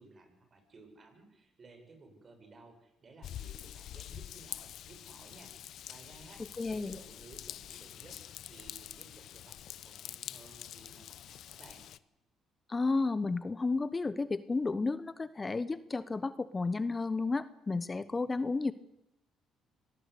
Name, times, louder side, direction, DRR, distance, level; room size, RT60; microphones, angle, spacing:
voice 1, 0.0-5.5 5.9-8.2 8.4-11.8, right 3 dB, 40° right, 6 dB, 8.0 m, -57 dB
Raindrop / Vehicle horn car horn honking / Trickle dribble, 3.2-12.0, left 11 dB, 70° left, 0.9 m, -46 dB
voice 2, 6.6-7.0 12.7-18.7, left 3 dB, 25° left, 15 dB, 1.0 m, -32 dB
25.0 x 19.0 x 8.4 m, 0.85 s
supercardioid pair, 65°, 0 cm